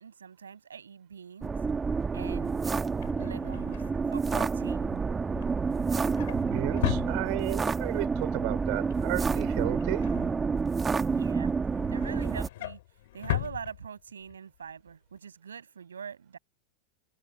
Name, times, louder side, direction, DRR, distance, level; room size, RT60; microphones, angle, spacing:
voice 1, 0.0-1.5 2.1-2.6 3.1-5.0 11.1-11.5 11.9-12.8 13.1-16.4, right 7 dB, 80° right, 7.5 m, -43 dB
sound 1, 1.4-12.5, right 5 dB, 20° right, 1.7 m, -29 dB
Drawer open or close, 2.8-7.8 8.1-8.5 8.7-11.0 11.4-14.4 14.7-14.9 15.2-15.3, left 16 dB, 65° left, 2.8 m, -38 dB
voice 2, 6.3-10.1, right 37 dB, 55° right, 2.9 m, -34 dB
hypercardioid pair, 90°, 0 cm